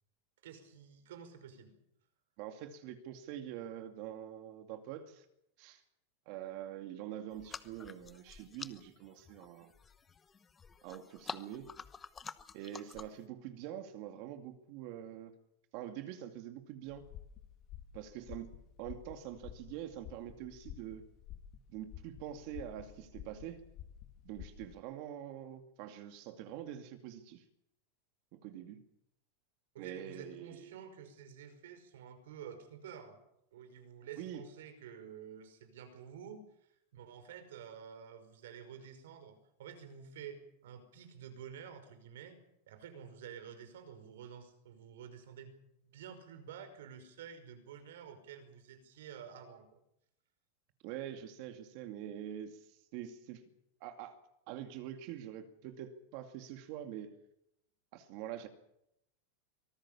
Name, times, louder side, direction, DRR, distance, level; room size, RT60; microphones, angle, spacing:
voice 1, 0.4-1.7 29.7-33.2 33.5-42.4 42.7-45.6 45.8-49.8, right 8 dB, 80° right, 9 dB, 5.4 m, -50 dB
voice 2, 2.4-5.2 5.6-5.8 6.3-9.7 10.8-11.8 12.5-15.3 15.7-17.0 17.9-21.0 21.7-23.6 24.2-27.4 28.3-28.8 29.8-30.7 34.2-34.4 50.8-53.4 53.8-54.2 54.5-57.2 57.9-58.5, right 11 dB, 50° right, 7 dB, 2.4 m, -45 dB
sound 1, 7.3-13.3, left 6 dB, 15° left, 0.9 m, -49 dB
sound 2, 16.9-24.8, left 11 dB, 40° left, 2.1 m, -51 dB
24.5 x 19.0 x 7.2 m, 0.80 s
supercardioid pair, 160°, 0 cm